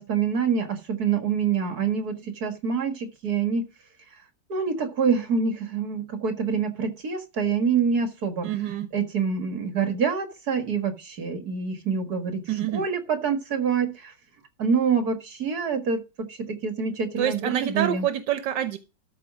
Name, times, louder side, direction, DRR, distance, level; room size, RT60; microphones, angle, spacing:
voice 1, 0.0-3.7 4.5-8.5 8.9-12.4 12.7-14.1 14.6-18.1, right 6 dB, 60° right, 6 dB, 2.2 m, -26 dB
voice 2, 8.4-8.9 12.5-12.9 17.2-18.8, right 11 dB, 90° right, 8 dB, 1.6 m, -27 dB
13.0 x 4.8 x 6.2 m, 0.29 s
omnidirectional pair, 1.9 m